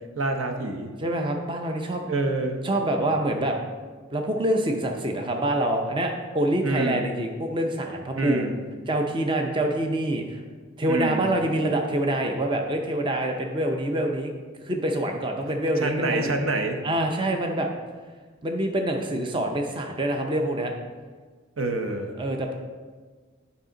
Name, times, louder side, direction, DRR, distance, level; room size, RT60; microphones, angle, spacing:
voice 1, 0.1-0.9 2.1-2.6 6.6-7.1 8.1-8.6 10.9-11.3 15.8-16.8 21.6-22.1, right 2 dB, 80° right, 5 dB, 0.9 m, -27 dB
voice 2, 1.0-2.0 2.6-3.6 4.1-8.5 8.9-10.4 10.8-14.3 14.6-16.3 16.8-17.7 18.4-20.7 22.2-22.5, right 1 dB, 25° right, 3 dB, 0.5 m, -26 dB
8.9 x 5.7 x 3.8 m, 1.5 s
head